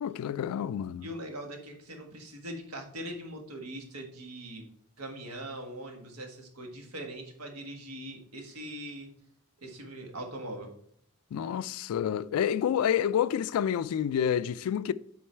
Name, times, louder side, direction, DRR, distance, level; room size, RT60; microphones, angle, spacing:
voice 1, 0.0-1.1 11.3-14.9, left 9 dB, 80° left, 0.3 m, -28 dB
voice 2, 1.0-4.6 5.0-9.1 9.6-10.7, right 1 dB, 85° right, 1.5 m, -41 dB
7.7 x 3.9 x 4.4 m
head